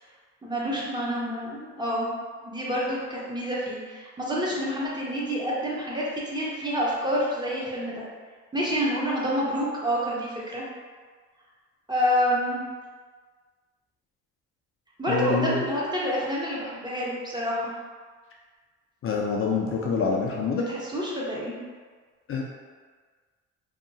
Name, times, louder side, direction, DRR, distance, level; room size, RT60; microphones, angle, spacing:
voice 1, 0.4-2.1 2.4-8.0 8.5-10.6 11.9-12.6 15.0-17.7 20.5-21.6, equal, 15° right, -6 dB, 0.7 m, -28 dB
voice 2, 15.1-15.6 19.0-20.7 22.3-22.4, left 4 dB, 45° left, -2 dB, 0.4 m, -26 dB
2.7 x 2.2 x 2.7 m, 1.5 s
cardioid pair, 90°, 30 cm